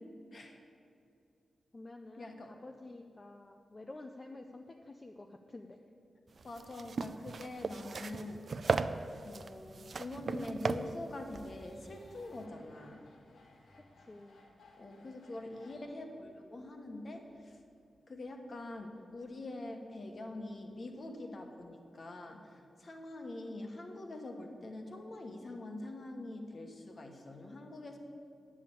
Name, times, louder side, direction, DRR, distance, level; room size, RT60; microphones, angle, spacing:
voice 1, 0.3-0.6 2.1-2.6 6.4-8.4 9.2-13.1 14.7-17.6 18.1-28.0, left 2 dB, 40° left, 4 dB, 1.2 m, -44 dB
voice 2, 1.7-5.8 14.1-14.4, left 2 dB, 20° left, 4 dB, 0.5 m, -50 dB
sound 1, 6.4-12.4, right 4 dB, 40° right, 0.4 m, -37 dB
sound 2, 8.1-21.7, left 2 dB, 80° left, 2.0 m, -65 dB
10.0 x 7.4 x 8.4 m, 2.5 s
wide cardioid pair, 180°, 0 cm